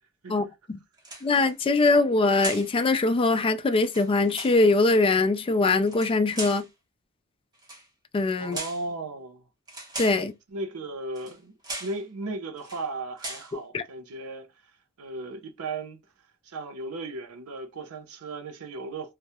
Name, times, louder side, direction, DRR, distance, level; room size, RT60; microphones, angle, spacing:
voice 1, 0.3-0.8 1.2-6.7 8.1-8.6 10.0-10.3 13.7-13.8, left 3 dB, 25° left, 0.3 m, -22 dB
sound 1, 1.0-1.5 2.4-2.7 3.7-4.6 5.8-6.7 7.6-7.9 8.5-8.9 9.7-10.3 11.1-11.4 11.6-12.0 12.6-12.8 13.2-13.5, right 2 dB, 20° right, 0.8 m, -38 dB
voice 2, 8.4-9.4 10.5-11.5 11.8-14.7 15.0-16.0 16.4-19.1, right 2 dB, 90° right, 0.6 m, -36 dB
2.2 x 2.0 x 2.8 m
head